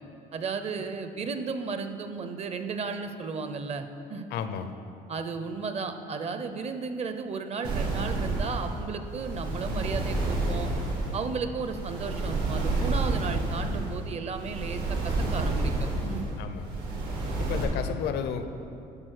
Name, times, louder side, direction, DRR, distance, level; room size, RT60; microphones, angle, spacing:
voice 1, 0.3-4.3 5.1-10.7 11.1-16.2, right 4 dB, 40° right, 8 dB, 0.6 m, -34 dB
voice 2, 4.3-4.8 16.4-16.8 17.4-18.5, left 8 dB, 75° left, 9 dB, 0.6 m, -33 dB
sound 1, 7.6-17.6, right 2 dB, 85° right, 1.8 m, -30 dB
11.0 x 4.2 x 6.5 m, 2.6 s
cardioid pair, 110°, 17 cm